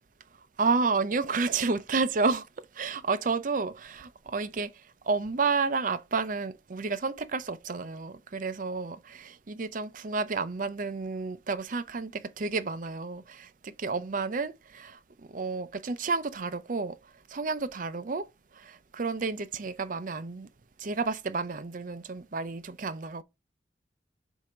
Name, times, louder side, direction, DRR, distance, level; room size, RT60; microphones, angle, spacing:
voice 1, 0.6-2.5 2.7-4.7 5.0-15.0 15.3-17.0 17.3-18.3 18.5-20.5 20.8-23.2, right 4 dB, 45° right, 0.5 m, -31 dB
7.5 x 2.7 x 4.9 m
head